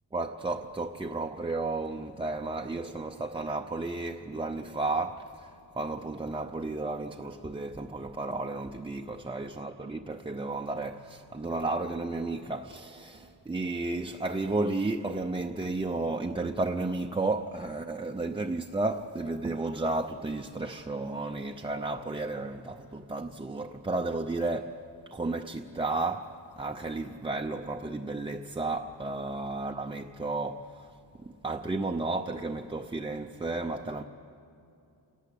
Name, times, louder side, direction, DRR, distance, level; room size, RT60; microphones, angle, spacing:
voice 1, 0.1-24.8 25.1-30.9 31.2-34.0, right 2 dB, 10° right, 0.5 m, -33 dB
28.5 x 18.5 x 8.4 m
wide cardioid pair, 155°, 46 cm